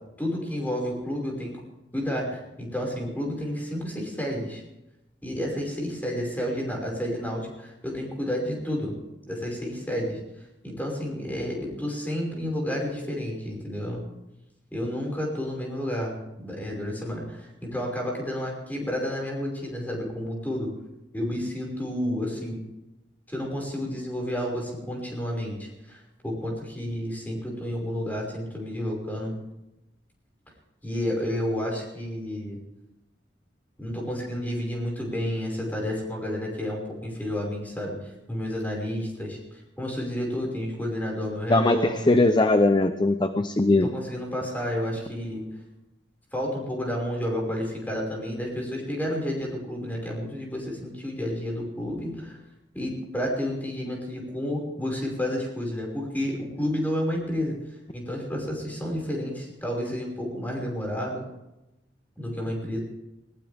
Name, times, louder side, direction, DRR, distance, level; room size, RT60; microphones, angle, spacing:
voice 1, 0.2-1.6 1.9-4.6 5.2-8.9 9.3-10.2 10.6-14.0 14.7-20.7 21.1-22.6 23.3-29.3 30.8-32.6 33.8-39.4 39.8-42.0 43.8-45.4 46.3-52.4 52.7-57.5 57.9-61.2 62.2-62.8, equal, 10° left, -1 dB, 5.5 m, -30 dB
voice 2, 41.5-43.9, left 2 dB, 25° left, 9 dB, 0.7 m, -20 dB
20.0 x 19.0 x 3.6 m, 0.94 s
head